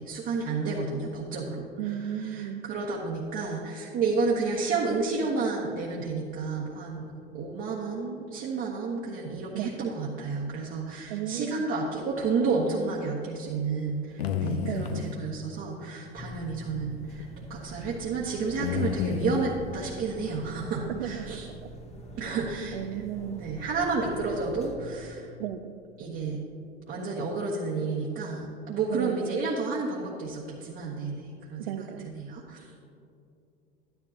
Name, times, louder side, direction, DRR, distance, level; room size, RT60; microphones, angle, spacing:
voice 1, 0.0-17.2 17.5-21.5 22.2-22.8 23.3-25.3 26.0-26.4 26.9-32.7, right 4 dB, 40° right, -5 dB, 1.5 m, -31 dB
voice 2, 1.8-2.6 9.5-9.8 11.1-11.7 14.6-15.1 20.9-21.7 22.7-23.5 25.4-25.7 28.9-29.5 31.6-32.1, right 10 dB, 70° right, 13 dB, 0.6 m, -35 dB
sound 1, 13.9-15.2 16.5-16.8 17.2-17.3 18.6-19.5, left 8 dB, 75° left, 0.8 m, -30 dB
sound 2, 16.2-24.8, right 1 dB, 20° left, 1.4 m, -45 dB
12.0 x 10.5 x 2.9 m, 2.6 s
hypercardioid pair, 80°, 30 cm